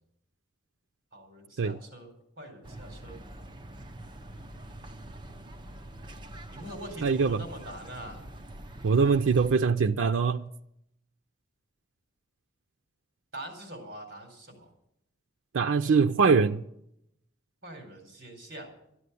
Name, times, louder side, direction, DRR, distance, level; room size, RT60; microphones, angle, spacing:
voice 1, 1.1-3.2 6.5-8.2 13.3-14.7 17.6-18.7, right 1 dB, 50° right, 4.3 m, -44 dB
sound 1, 2.6-9.6, right 1 dB, 25° right, 0.8 m, -45 dB
voice 2, 7.0-7.4 8.8-10.4 15.5-16.6, right 5 dB, 85° right, 0.5 m, -23 dB
13.0 x 9.6 x 8.3 m
head